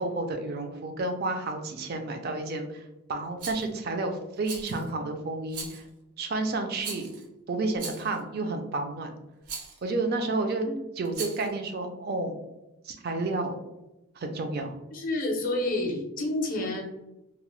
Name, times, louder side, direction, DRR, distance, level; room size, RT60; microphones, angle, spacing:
voice 1, 0.0-5.8 6.2-7.0 7.5-9.1 9.8-10.7 11.0-12.3 12.8-13.6 14.2-14.8, right 2 dB, 45° right, 5 dB, 0.4 m, -31 dB
Rattle, 3.4-3.7 4.4-4.9 5.5-5.9 6.8-7.2 7.8-8.2 9.5-9.8 11.1-11.5, right 4 dB, 80° right, 0.7 m, -39 dB
voice 2, 14.9-16.8, left 2 dB, 40° left, 2 dB, 0.5 m, -29 dB
2.8 x 2.0 x 3.0 m, 0.94 s
head